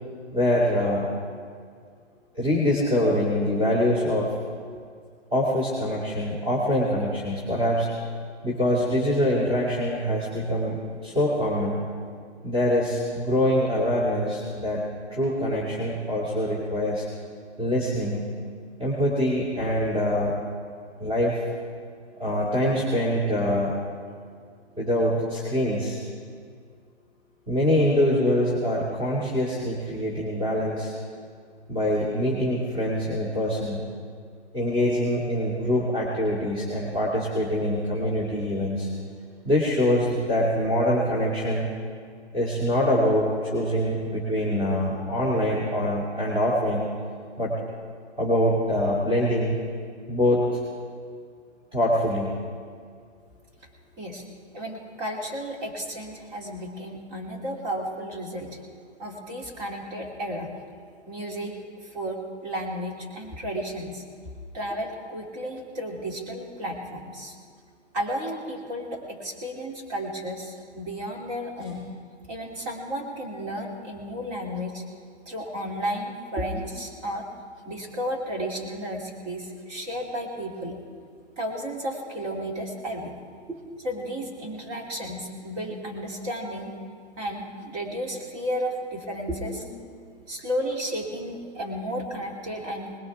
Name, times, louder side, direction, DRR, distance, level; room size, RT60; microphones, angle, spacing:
voice 1, 0.3-1.1 2.3-4.4 5.3-7.9 8.4-11.8 12.4-14.8 15.1-17.1 17.6-18.2 18.8-20.3 21.0-21.4 22.2-23.7 24.8-26.0 27.5-30.9 31.7-33.8 34.5-38.9 39.4-41.7 42.3-46.9 47.4-47.6 48.2-49.6 50.1-50.6 51.7-52.3 83.5-83.6 89.7-89.8, equal, 15° right, -6 dB, 2.3 m, -24 dB
voice 2, 54.5-58.6 59.0-60.5 61.1-64.0 64.5-67.3 67.9-71.9 72.3-74.8 75.3-77.3 77.6-80.8 81.4-83.2 83.8-86.7 87.2-89.6 90.3-92.9, equal, 35° right, 0 dB, 2.9 m, -33 dB
20.5 x 18.5 x 3.6 m, 2.1 s
hypercardioid pair, 145°, 35 cm